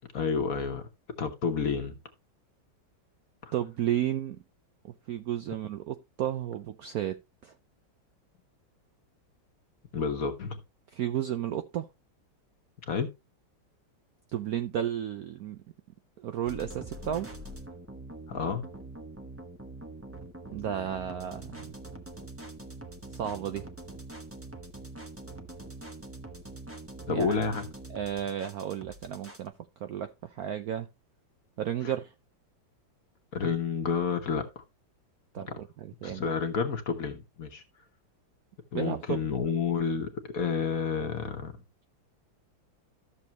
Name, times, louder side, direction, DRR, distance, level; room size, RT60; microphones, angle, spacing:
voice 1, 0.1-0.9 1.2-2.0 3.4-3.5 9.9-10.6 12.9-13.1 18.3-18.7 27.1-27.6 31.8-31.9 33.3-34.6 36.0-37.6 38.7-41.5, left 5 dB, 50° left, 1.3 m, -30 dB
voice 2, 3.5-4.4 4.8-7.5 10.9-11.9 14.3-15.6 16.2-17.3 20.5-21.7 23.1-23.7 27.1-27.4 27.9-29.5 29.8-30.9 31.6-32.1 35.3-36.2 38.7-39.2, right 10 dB, 70° right, 0.9 m, -33 dB
sound 1, 16.5-29.5, right 2 dB, 10° right, 0.6 m, -44 dB
13.0 x 6.7 x 2.9 m
omnidirectional pair, 2.1 m